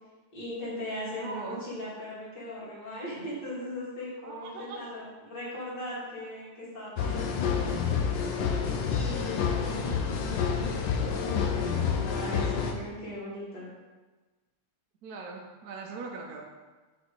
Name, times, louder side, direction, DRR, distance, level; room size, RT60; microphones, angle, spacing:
voice 1, 0.3-8.0 8.9-13.7, left 1 dB, 50° left, -8 dB, 3.0 m, -39 dB
voice 2, 1.2-1.6 4.2-4.9 15.0-16.4, right 4 dB, 65° right, 0 dB, 1.0 m, -40 dB
sound 1, 7.0-12.7, left 6 dB, 70° left, 1.3 m, -28 dB
6.1 x 5.2 x 4.8 m, 1.3 s
omnidirectional pair, 2.3 m